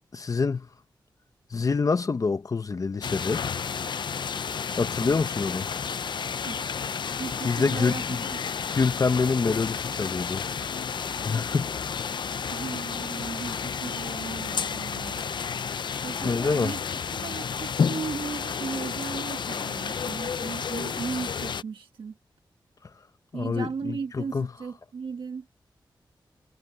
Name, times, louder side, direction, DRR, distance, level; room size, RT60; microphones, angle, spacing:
voice 1, 0.1-0.7 1.5-3.5 4.8-5.7 7.4-8.2 8.7-10.4 11.2-11.7 16.2-16.7 23.3-24.5, left 4 dB, 45° left, 0.9 m, -26 dB
sound 1, 3.0-21.6, left 6 dB, 65° left, 0.6 m, -31 dB
voice 2, 5.0-5.3 6.4-6.7 7.2-8.0 11.3-11.6 12.4-15.3 15.6-16.8 17.1-22.2 23.3-25.5, right 5 dB, 80° right, 1.5 m, -37 dB
wide cardioid pair, 115°, 8 cm